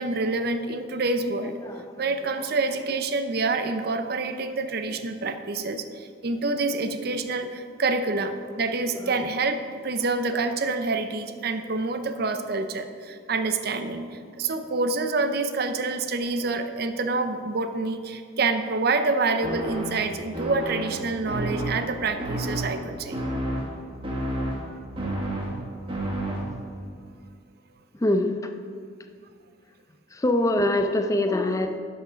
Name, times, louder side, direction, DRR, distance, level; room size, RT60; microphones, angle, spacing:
voice 1, 0.0-1.6 2.0-23.2, right 3 dB, 55° right, 9 dB, 0.6 m, -27 dB
voice 2, 1.4-2.1 9.0-9.3 21.7-21.8 24.4-24.5 26.3-26.5 27.9-28.5 30.1-31.8, left 1 dB, 15° left, 6 dB, 0.4 m, -25 dB
sound 1, 19.4-26.8, right 1 dB, 30° right, 1.5 m, -31 dB
11.0 x 5.9 x 5.0 m, 2.1 s
head